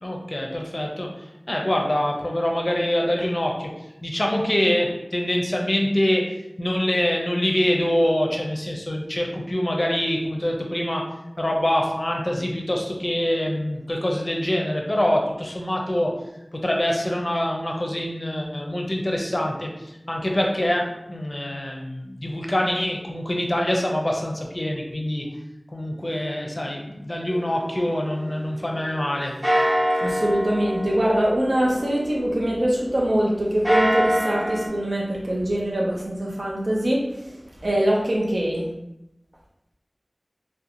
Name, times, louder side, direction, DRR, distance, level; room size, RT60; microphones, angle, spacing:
voice 1, 0.0-1.1 1.5-3.7 4.0-6.3 6.6-11.0 11.4-16.2 16.5-19.7 20.1-25.3 25.7-29.3, left 1 dB, 40° left, 0 dB, 0.5 m, -25 dB
sound 1, 27.3-29.0 29.4-33.0 33.4-34.7, equal, 25° right, 1.0 m, -26 dB
voice 2, 30.0-37.4 37.6-38.6, right 1 dB, 70° right, -4 dB, 0.6 m, -23 dB
2.8 x 2.1 x 2.5 m, 0.87 s
wide cardioid pair, 40°, 0 cm